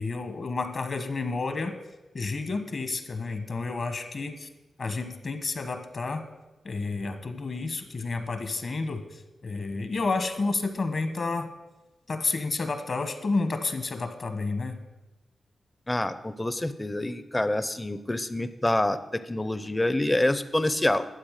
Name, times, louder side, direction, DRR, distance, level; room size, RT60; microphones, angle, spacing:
voice 1, 0.0-1.7 2.1-4.5 4.8-6.2 6.6-11.5 12.1-14.8, left 3 dB, 45° left, 9 dB, 1.2 m, -30 dB
voice 2, 15.9-21.1, left 1 dB, 15° left, 13 dB, 0.6 m, -27 dB
12.5 x 8.1 x 6.5 m, 1.1 s
wide cardioid pair, 135°, 0 cm